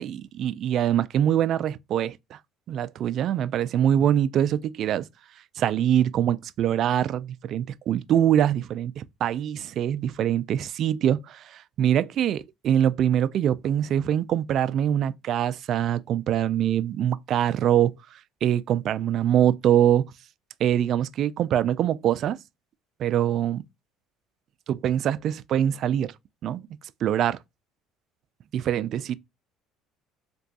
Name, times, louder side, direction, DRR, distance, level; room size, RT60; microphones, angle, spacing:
voice 1, 0.0-2.4 2.7-5.1 5.6-17.9 18.4-20.1 20.6-22.4 23.0-23.6 24.7-26.1 26.4-26.7 27.0-27.4 28.5-29.2, right 10 dB, 50° right, 0.3 m, -24 dB
3.4 x 3.0 x 2.7 m
cardioid pair, 130°, 0 cm